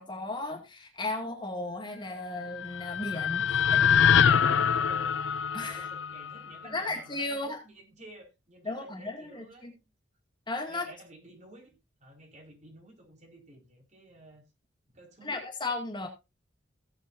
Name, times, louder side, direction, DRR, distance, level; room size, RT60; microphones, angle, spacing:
voice 1, 0.0-3.8 5.5-5.9 6.6-7.6 8.6-9.7 10.5-10.9 15.2-16.1, left 2 dB, 25° left, 2.1 m, -35 dB
sound 1, 2.4-6.6, left 7 dB, 75° left, 0.5 m, -25 dB
voice 2, 3.6-3.9 4.2-5.2 5.7-9.9 10.7-14.4 14.9-15.4, right 1 dB, 40° right, 4.5 m, -51 dB
17.5 x 8.0 x 2.6 m
head